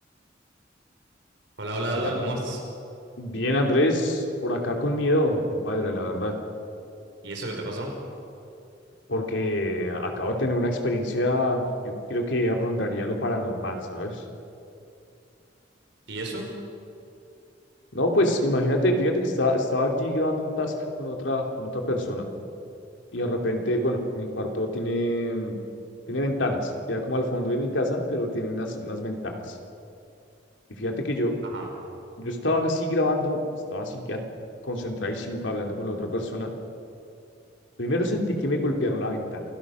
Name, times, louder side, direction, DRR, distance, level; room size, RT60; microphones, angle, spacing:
voice 1, 1.6-2.6 7.2-7.9 16.1-16.4 31.4-31.7, right 1 dB, 75° right, 1 dB, 4.3 m, -30 dB
voice 2, 3.2-6.4 9.1-14.2 17.9-22.3 23.1-25.6 26.1-29.6 30.7-31.3 32.2-33.4 33.7-34.2 34.6-36.5 37.8-39.4, left 1 dB, 80° left, 2 dB, 3.0 m, -26 dB
28.0 x 17.5 x 6.3 m, 2.6 s
head